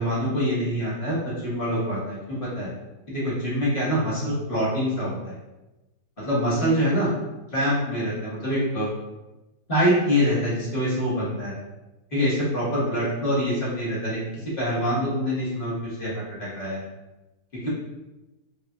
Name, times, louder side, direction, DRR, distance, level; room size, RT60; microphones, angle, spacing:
voice 1, 0.0-2.7 3.1-5.4 6.2-7.1 7.5-8.9 9.7-11.5 12.1-16.8 17.6-17.7, equal, 30° left, -9 dB, 1.3 m, -25 dB
3.8 x 3.2 x 2.3 m, 1.0 s
omnidirectional pair, 2.0 m